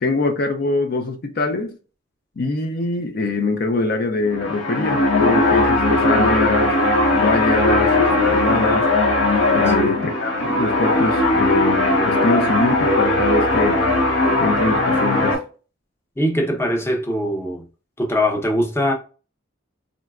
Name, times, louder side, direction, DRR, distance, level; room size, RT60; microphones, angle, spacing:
voice 1, 0.0-1.8 2.4-6.7 7.2-8.9 9.5-13.8 14.4-15.4, left 3 dB, 55° left, 0.5 m, -23 dB
sound 1, 4.2-15.3, left 2 dB, 75° left, 0.9 m, -18 dB
voice 2, 16.2-17.7 18.0-18.9, equal, 15° left, 0.6 m, -21 dB
3.8 x 2.2 x 2.3 m
head